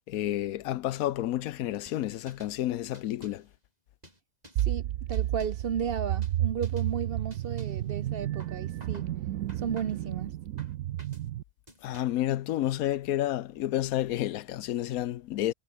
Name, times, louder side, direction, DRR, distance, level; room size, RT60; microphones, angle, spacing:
voice 1, 0.1-3.5 11.8-15.5, left 13 dB, 90° left, 1.1 m, -30 dB
sound 1, 1.9-2.6 2.9-3.5 4.0-4.7 5.1-5.7 6.2-6.4 6.6-6.9 7.3-7.9 8.4-9.1 9.5-10.1 10.6-11.3 11.7-12.3, right 1 dB, 30° right, 7.3 m, -53 dB
voice 2, 4.6-9.1 9.6-10.3, right 7 dB, 50° right, 0.9 m, -34 dB
sound 2, 4.6-11.4, right 13 dB, 80° right, 1.1 m, -32 dB
omnidirectional pair, 1.5 m